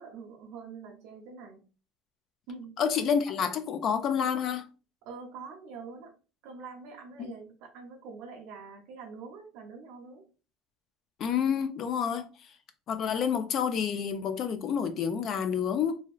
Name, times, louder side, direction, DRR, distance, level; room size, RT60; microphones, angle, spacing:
voice 1, 0.0-1.7 2.5-2.8 5.0-6.1 6.4-10.2, right 5 dB, 70° right, 0.7 m, -45 dB
voice 2, 2.8-4.7 11.2-12.3 12.9-16.0, left 7 dB, 45° left, 0.4 m, -28 dB
2.9 x 2.7 x 2.3 m
cardioid pair, 150°, 0 cm